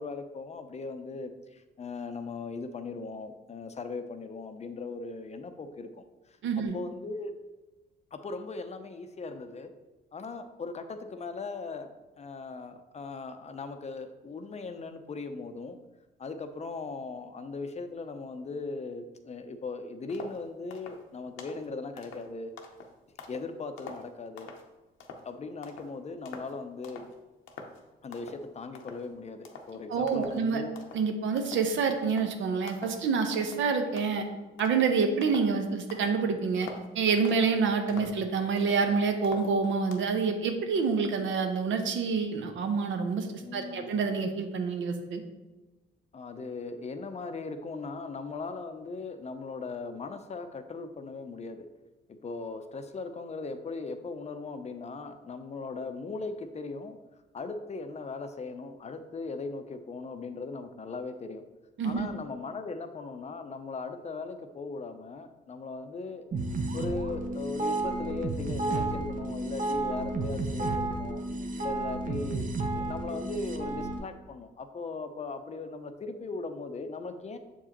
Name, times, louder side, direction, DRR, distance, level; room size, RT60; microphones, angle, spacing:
voice 1, 0.0-7.3 8.1-9.7 10.1-15.8 16.2-22.5 23.3-24.5 25.2-27.1 28.0-30.7 38.1-38.2 43.4-44.0 46.1-51.7 52.1-57.0 57.3-61.4 61.8-66.3 66.7-71.2 71.6-77.4, left 3 dB, 35° left, 8 dB, 0.5 m, -38 dB
voice 2, 6.4-6.8 29.9-30.6 30.9-34.3 34.6-36.7 36.9-45.2 61.8-62.1, right 5 dB, 75° right, 5 dB, 0.8 m, -27 dB
sound 1, 20.1-20.4 20.7-21.0 21.4-21.7 22.0-23.5 23.8-24.7 25.0-25.3 25.6-25.9 26.3-26.6 26.8-27.2 27.5-27.8 28.1-28.4 28.7-29.1 29.4-29.7 30.1-30.4 30.8-31.1 31.4-31.7 32.0-32.3 32.7-33.0 33.3-33.7 34.0-35.5 35.9-36.2 36.6-36.9 37.2-37.6 37.9-38.9 39.2-40.0, left 4 dB, 85° left, 0.7 m, -46 dB
sound 2, 66.3-74.0, right 2 dB, 45° right, 0.7 m, -32 dB
6.9 x 4.8 x 2.9 m, 1.1 s
cardioid pair, 90°, 20 cm